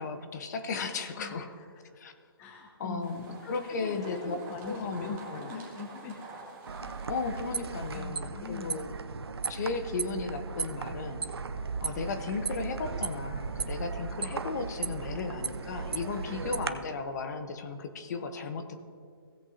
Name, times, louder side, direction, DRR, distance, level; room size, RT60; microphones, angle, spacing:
voice 1, 0.0-1.5 1.9-2.1 2.8-3.2 3.5-4.4 4.7-5.5 6.8-9.0 9.5-11.2 11.8-18.8, left 4 dB, 45° left, 8 dB, 0.9 m, -35 dB
voice 2, 1.1-1.7 2.4-6.2 7.9-8.9 15.1-15.2, left 4 dB, 15° left, 2 dB, 0.7 m, -42 dB
sound 1, 3.0-8.0, right 3 dB, 20° right, 1.7 m, -47 dB
sound 2, 6.7-16.7, right 4 dB, 80° right, 0.6 m, -36 dB
16.5 x 8.1 x 2.8 m, 2.1 s
hypercardioid pair, 150°, 13 cm